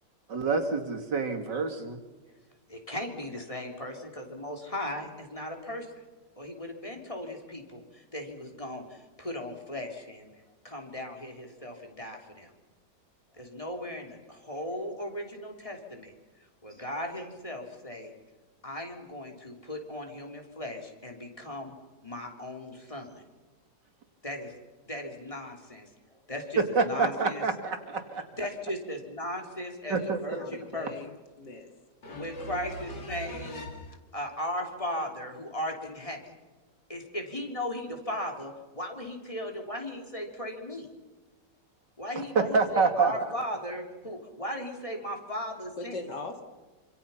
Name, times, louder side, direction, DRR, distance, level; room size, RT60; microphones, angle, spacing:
voice 1, 0.3-2.0 26.7-28.3 29.9-30.2 42.3-43.1, right 4 dB, 80° right, 4 dB, 3.1 m, -27 dB
voice 2, 2.7-5.9 6.4-10.3 10.6-12.5 13.3-16.1 16.6-18.1 18.6-21.7 22.0-23.2 24.2-24.5 24.8-27.4 28.4-30.9 32.1-33.7 34.1-36.3 36.9-40.9 42.0-46.0, left 1 dB, 20° left, 2 dB, 3.6 m, -37 dB
voice 3, 30.0-31.7 32.0-34.0 45.8-46.4, left 2 dB, 70° left, 5 dB, 3.3 m, -41 dB
27.0 x 26.5 x 5.8 m, 1.2 s
omnidirectional pair, 1.9 m